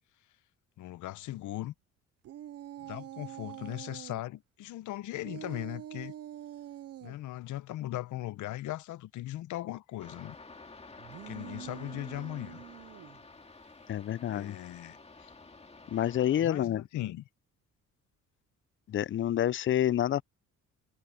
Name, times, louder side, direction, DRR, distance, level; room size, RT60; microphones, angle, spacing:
voice 1, 0.8-1.7 2.8-6.1 7.0-10.4 11.3-12.6 14.3-15.0 16.4-17.2, left 15 dB, 75° left, 0.8 m, -38 dB
sound 1, 2.2-4.2 5.2-7.2 11.0-13.2, right 12 dB, 55° right, 0.6 m, -45 dB
sound 2, 10.0-16.5, left 3 dB, 20° left, 2.2 m, -51 dB
voice 2, 13.9-14.6 15.9-16.8 18.9-20.2, left 11 dB, 40° left, 0.5 m, -28 dB
cardioid pair, 90°, 30 cm